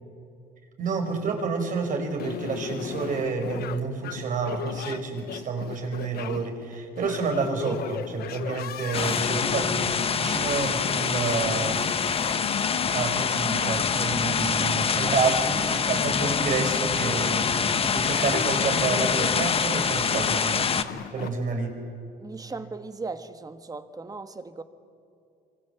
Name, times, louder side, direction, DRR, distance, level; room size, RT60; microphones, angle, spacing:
voice 1, 0.8-12.4 12.9-17.5 17.8-20.7 21.1-21.8, right 4 dB, 50° right, 5.3 m, -29 dB
sound 1, 2.2-21.3, left 10 dB, 70° left, 1.3 m, -37 dB
sound 2, 8.9-20.8, left 6 dB, 35° left, 1.3 m, -25 dB
voice 2, 22.2-24.6, right 3 dB, 20° right, 1.5 m, -37 dB
25.5 x 25.0 x 8.2 m
cardioid pair, 110°, 17 cm